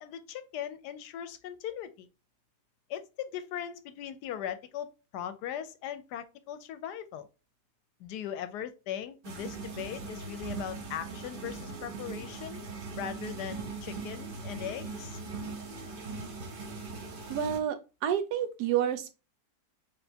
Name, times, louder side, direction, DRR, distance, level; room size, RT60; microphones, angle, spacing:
voice 1, 0.0-2.1 2.9-4.9 5.1-7.3 8.0-12.7 12.9-15.2, left 9 dB, 75° left, 1.1 m, -39 dB
sound 1, 9.2-17.6, right 4 dB, 45° right, 0.8 m, -40 dB
voice 2, 17.3-19.1, right 9 dB, 70° right, 1.1 m, -29 dB
4.2 x 3.4 x 2.7 m
omnidirectional pair, 1.9 m